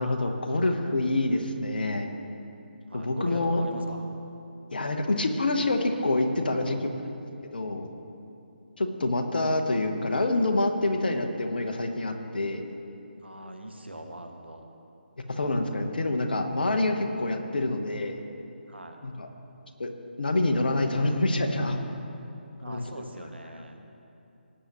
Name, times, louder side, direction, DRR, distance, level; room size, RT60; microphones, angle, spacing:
voice 1, 0.0-2.1 2.9-3.6 4.7-6.8 7.5-7.9 8.8-12.6 15.3-18.2 19.0-19.3 19.8-19.9 20.2-21.8 22.7-22.9, left 2 dB, 55° left, 5 dB, 1.0 m, -26 dB
voice 2, 2.9-4.1 6.5-6.9 13.2-14.7 18.7-19.0 22.6-23.8, right 1 dB, 80° right, 4 dB, 1.3 m, -41 dB
18.0 x 8.9 x 3.1 m, 2.7 s
figure-of-eight pair, 150°, 6 cm